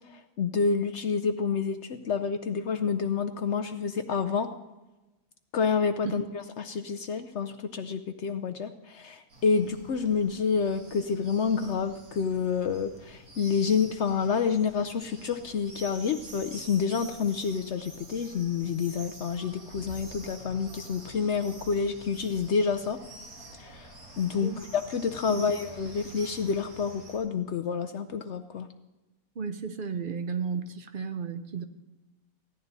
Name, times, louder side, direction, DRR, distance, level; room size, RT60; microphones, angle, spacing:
voice 1, 0.1-4.5 5.5-23.0 23.6-23.9 24.2-28.7, left 5 dB, 60° left, 7 dB, 0.8 m, -28 dB
sound 1, 9.3-27.2, right 2 dB, 90° right, 2.8 m, -47 dB
voice 2, 29.4-31.6, right 5 dB, 50° right, 9 dB, 0.7 m, -33 dB
16.0 x 11.0 x 4.0 m, 1.1 s
omnidirectional pair, 1.5 m